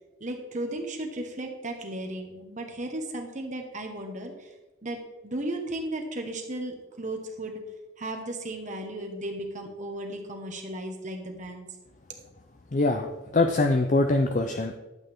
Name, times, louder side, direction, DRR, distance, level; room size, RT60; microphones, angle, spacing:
voice 1, 0.2-4.5 4.8-7.6 8.0-11.7, right 1 dB, 35° right, 3 dB, 1.3 m, -35 dB
voice 2, 12.7-13.1 13.3-14.8, left 2 dB, 40° left, 6 dB, 0.5 m, -23 dB
12.0 x 8.1 x 3.6 m, 1.1 s
head